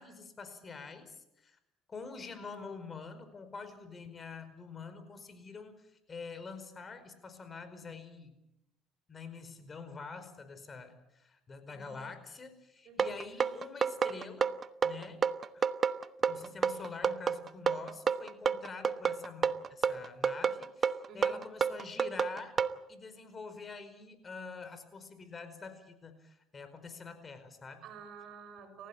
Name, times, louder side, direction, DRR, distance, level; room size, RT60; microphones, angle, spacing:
voice 1, 0.0-1.6 1.9-8.4 9.1-14.5 14.8-15.2 15.5-15.7 16.3-22.6 22.9-27.8, left 4 dB, 30° left, 10 dB, 4.9 m, -46 dB
voice 2, 11.7-12.1 12.8-13.2 21.1-21.4 27.8-28.9, right 5 dB, 60° right, 7 dB, 6.6 m, -50 dB
sound 1, 13.0-22.8, right 6 dB, 40° right, 1.1 m, -29 dB
30.0 x 16.0 x 8.6 m, 0.86 s
supercardioid pair, 90°, 0 cm